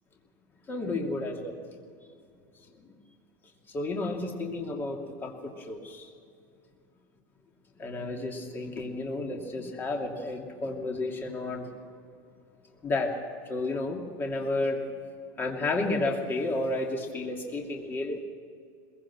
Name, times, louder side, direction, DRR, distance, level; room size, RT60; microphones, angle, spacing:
voice 1, 0.7-1.6 3.7-6.0 7.8-11.7 12.8-13.1 13.5-14.8 15.4-18.2, left 2 dB, 20° left, 1 dB, 2.7 m, -31 dB
22.0 x 22.0 x 6.1 m, 2.3 s
supercardioid pair, 160°, 10 cm